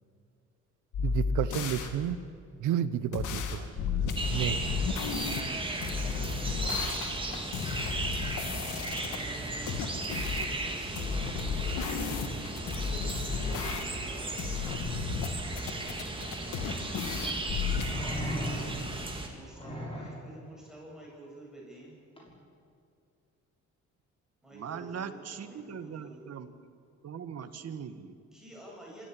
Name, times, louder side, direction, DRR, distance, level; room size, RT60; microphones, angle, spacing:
sound 1, 0.9-1.9 3.1-5.4 5.8-9.2 9.7-10.5 11.0-14.1 14.4-15.3 15.6-17.9, left 5 dB, 80° left, 2.2 m, -33 dB
voice 1, 1.0-2.2 2.6-3.7 4.3-4.6, right 10 dB, 80° right, 14 dB, 1.1 m, -31 dB
sound 2, 4.1-19.3, right 2 dB, 15° right, 3.7 m, -36 dB
voice 2, 9.0-10.2 10.6-14.5 19.3-22.0 24.4-26.2 28.3-29.1, right 1 dB, ahead, -4 dB, 7.9 m, -49 dB
sound 3, 17.8-19.0 19.6-20.3 22.2-22.3, equal, 20° left, 6.3 m, -36 dB
voice 3, 24.5-26.5 27.0-28.2, right 7 dB, 55° right, 10 dB, 1.7 m, -40 dB
25.5 x 14.5 x 9.9 m, 2.4 s
cardioid pair, 90°, 30 cm